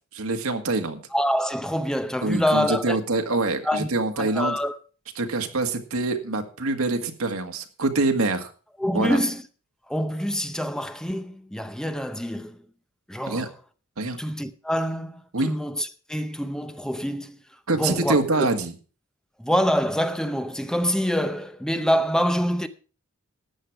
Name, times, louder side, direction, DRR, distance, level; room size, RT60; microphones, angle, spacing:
voice 1, 0.1-1.0 2.2-4.6 5.2-8.5 8.9-9.2 13.3-13.5 14.0-14.2 15.3-15.5 17.7-18.7, right 2 dB, 80° right, 1.8 m, -25 dB
voice 2, 1.1-3.0 3.6-3.9 4.2-4.8 8.8-9.4 9.9-12.6 13.1-13.5 14.2-17.4 17.8-18.5 19.4-22.7, equal, 5° left, 0.7 m, -26 dB
13.5 x 9.5 x 4.8 m
head